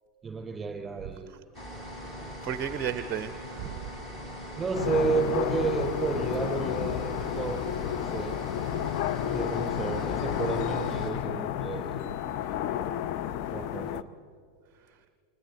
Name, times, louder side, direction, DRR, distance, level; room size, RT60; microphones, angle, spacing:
voice 1, 0.2-1.3 4.6-7.6 7.9-8.4 9.2-12.2 13.5-14.1, right 5 dB, 15° right, 2 dB, 4.4 m, -31 dB
sound 1, 1.5-11.1, equal, 20° left, 4.8 m, -41 dB
voice 2, 2.4-3.9 13.4-13.6 14.7-15.0, right 9 dB, 35° right, 12 dB, 0.7 m, -35 dB
sound 2, 4.7-14.0, left 11 dB, 40° left, 0.6 m, -31 dB
29.5 x 27.0 x 4.1 m, 2.3 s
figure-of-eight pair, 90°, 0 cm